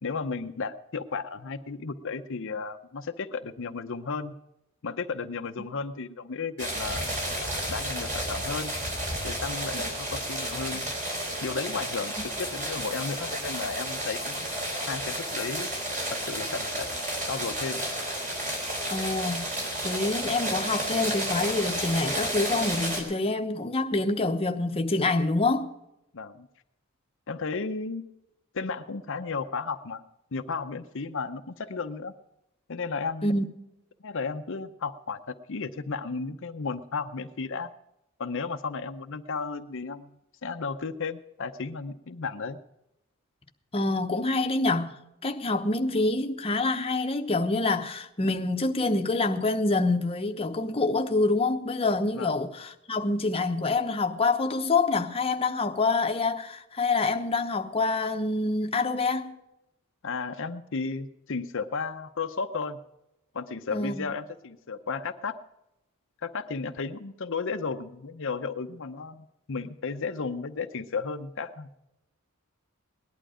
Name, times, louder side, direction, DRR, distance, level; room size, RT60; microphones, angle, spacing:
voice 1, 0.0-4.3 4.8-7.1 7.7-8.8 9.2-10.8 11.4-14.4 14.9-15.7 16.1-16.9 17.3-17.8 26.1-26.5 27.3-28.1 28.5-30.0 30.3-32.1 32.7-33.4 34.0-37.7 38.2-40.1 40.4-42.6 52.1-52.3 60.0-62.8 63.3-65.4 66.2-71.7, left 4 dB, 65° left, 0.7 m, -34 dB
sound 1, 6.6-23.0, right 1 dB, 35° right, 4.3 m, -32 dB
voice 2, 18.9-19.5 19.8-25.7 33.2-33.5 43.7-59.4 63.7-64.1, left 3 dB, 25° left, 0.9 m, -26 dB
18.5 x 11.5 x 4.9 m
head